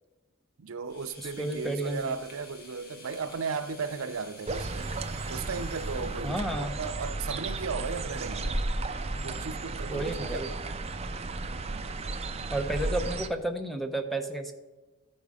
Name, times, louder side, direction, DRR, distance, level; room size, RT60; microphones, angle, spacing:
voice 1, 0.6-4.9 5.3-8.6 9.2-10.6, right 5 dB, 80° right, 0.6 m, -36 dB
sound 1, 0.8-9.0, equal, 50° left, 1.6 m, -41 dB
voice 2, 1.2-2.1 6.2-6.8 9.9-10.5 12.5-14.5, right 1 dB, ahead, 0.8 m, -32 dB
sound 2, 4.5-13.3, right 3 dB, 30° right, 0.5 m, -34 dB
13.5 x 5.3 x 4.8 m
head